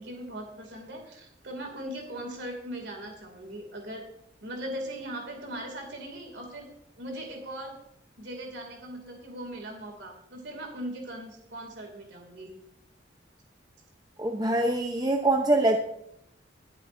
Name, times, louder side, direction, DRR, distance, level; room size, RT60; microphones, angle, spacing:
voice 1, 0.0-4.0 4.4-6.7 7.0-7.8 8.2-12.5, right 1 dB, 65° right, 2 dB, 2.6 m, -39 dB
voice 2, 14.2-15.8, right 2 dB, 20° right, 4 dB, 0.7 m, -24 dB
23.0 x 7.7 x 2.6 m, 0.73 s
head